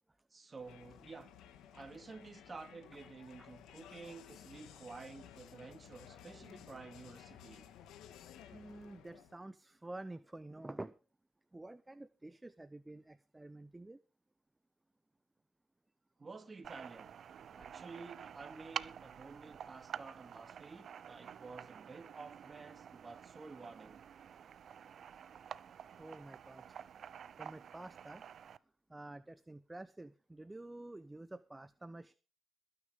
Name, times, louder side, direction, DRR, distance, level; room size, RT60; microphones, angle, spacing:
voice 1, 0.3-1.3 1.7-7.7 16.2-17.1 17.5-24.1 25.6-25.7, right 4 dB, 30° right, 2.5 m, -51 dB
Crowd, 0.6-9.4, left 10 dB, 85° left, 1.6 m, -56 dB
voice 2, 8.5-10.9 11.5-14.0 26.0-26.8 27.4-28.2 28.9-32.1, right 2 dB, 15° right, 0.7 m, -49 dB
sound 1, 16.6-28.6, right 8 dB, 60° right, 0.6 m, -49 dB
21.5 x 9.7 x 3.6 m
cardioid pair, 90°, 0 cm